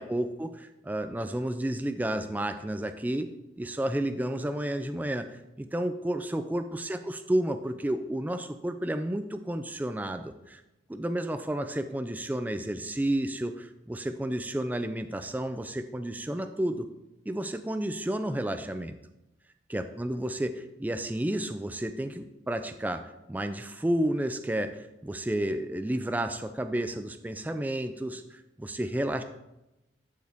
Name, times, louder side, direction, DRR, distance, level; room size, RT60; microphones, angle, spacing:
voice 1, 0.0-10.6 10.9-16.9 17.3-19.0 19.7-29.2, right 1 dB, 10° right, 9 dB, 0.3 m, -31 dB
12.0 x 4.6 x 3.5 m, 0.93 s
head